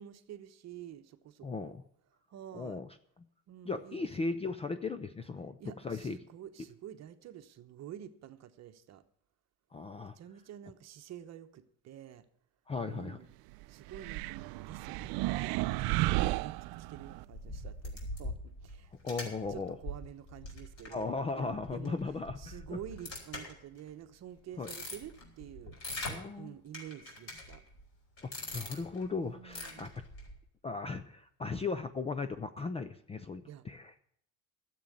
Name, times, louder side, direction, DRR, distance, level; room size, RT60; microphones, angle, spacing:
voice 1, 0.0-1.8 2.3-2.8 3.5-4.3 5.6-9.0 10.0-12.2 12.8-13.3 13.7-22.0 22.4-25.7 26.4-27.6 29.3-29.9 33.5-33.6, right 10 dB, 40° right, 10 dB, 1.0 m, -49 dB
voice 2, 1.4-1.8 2.5-2.9 3.7-5.6 5.8-6.2 9.7-10.2 12.7-13.2 19.0-19.8 20.9-22.8 24.6-24.7 26.1-26.5 28.2-29.9 30.6-33.9, left 4 dB, 15° left, 11 dB, 0.4 m, -37 dB
sound 1, 13.9-17.2, right 18 dB, 65° right, 0.5 m, -33 dB
sound 2, 17.0-23.9 24.4-26.2 26.7-27.8 28.2-29.1 29.5-30.3, left 1 dB, 40° left, 4.8 m, -43 dB
12.5 x 7.7 x 8.4 m, 0.67 s
cardioid pair, 145°, 39 cm